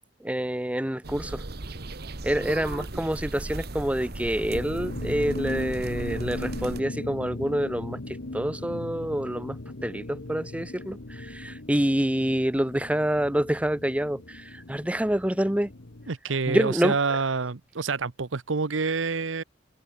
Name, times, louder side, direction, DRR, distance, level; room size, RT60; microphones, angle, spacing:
voice 1, 0.2-1.4 2.2-15.7 16.5-17.2, right 1 dB, 5° right, 0.7 m, -27 dB
sound 1, 1.0-6.8, right 2 dB, 55° right, 1.4 m, -37 dB
sound 2, 4.5-16.1, left 2 dB, 65° left, 1.4 m, -38 dB
voice 2, 16.1-19.4, right 4 dB, 80° right, 0.9 m, -27 dB
head